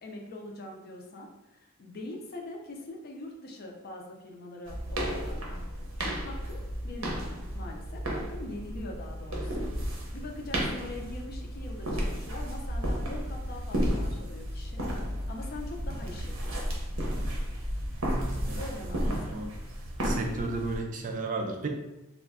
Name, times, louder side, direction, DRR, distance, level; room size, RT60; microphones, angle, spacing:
voice 1, 0.0-14.8 15.3-16.7 18.4-19.5, left 2 dB, 50° left, 1 dB, 0.5 m, -43 dB
sound 1, 4.7-20.8, equal, 80° right, 0.6 m, -33 dB
voice 2, 18.4-19.5 20.0-21.7, right 2 dB, 40° right, 3 dB, 0.3 m, -34 dB
2.3 x 2.1 x 3.5 m, 0.93 s
head